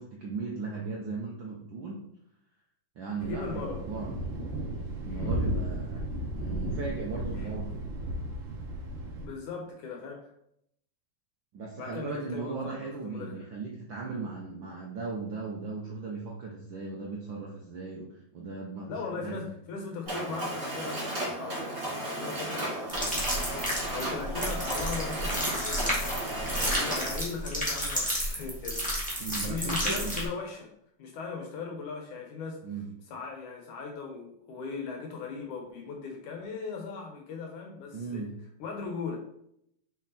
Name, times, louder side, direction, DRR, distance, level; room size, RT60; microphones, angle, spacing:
voice 1, 0.0-2.1 3.0-4.3 5.0-6.1 6.3-7.7 11.5-19.5 29.2-30.1 32.6-32.9 37.9-38.3, right 4 dB, 80° right, -2 dB, 1.0 m, -37 dB
voice 2, 3.2-3.8 5.1-5.5 7.3-7.5 9.2-10.3 11.8-13.5 18.9-23.0 23.9-26.1 26.5-30.7 31.0-32.6 33.1-38.2 38.6-39.2, left 4 dB, 75° left, 1 dB, 2.6 m, -39 dB
Thunder, 3.2-9.3, right 1 dB, 60° right, 1.3 m, -34 dB
Mechanisms, 20.1-27.2, right 1 dB, 25° right, 2.7 m, -34 dB
sound 1, 22.9-30.3, equal, 5° left, 1.5 m, -31 dB
6.3 x 4.9 x 4.2 m, 0.73 s
omnidirectional pair, 3.6 m